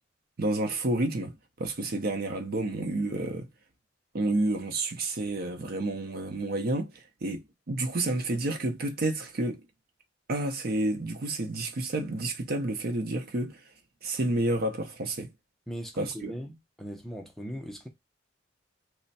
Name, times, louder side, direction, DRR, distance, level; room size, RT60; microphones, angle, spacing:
voice 1, 0.4-3.5 4.1-9.6 10.3-13.6 14.0-15.3 16.0-16.3, right 2 dB, 50° right, 0.6 m, -30 dB
voice 2, 15.7-17.9, equal, ahead, 0.5 m, -39 dB
3.3 x 2.1 x 4.0 m
head